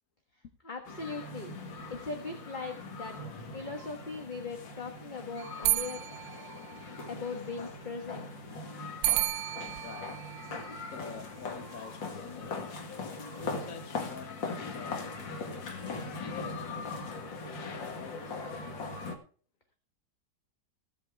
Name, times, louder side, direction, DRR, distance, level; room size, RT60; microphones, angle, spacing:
voice 1, 0.6-1.6 1.9-3.2 3.5-6.1 7.1-8.3, left 4 dB, 30° left, 1.4 m, -39 dB
sound 1, 0.9-19.2, left 3 dB, 85° left, 2.3 m, -40 dB
sound 2, 5.4-7.3 9.0-11.4, right 15 dB, 75° right, 0.6 m, -33 dB
voice 2, 9.5-12.7 13.3-18.4, left 6 dB, 55° left, 1.3 m, -48 dB
16.0 x 8.3 x 3.4 m
omnidirectional pair, 1.9 m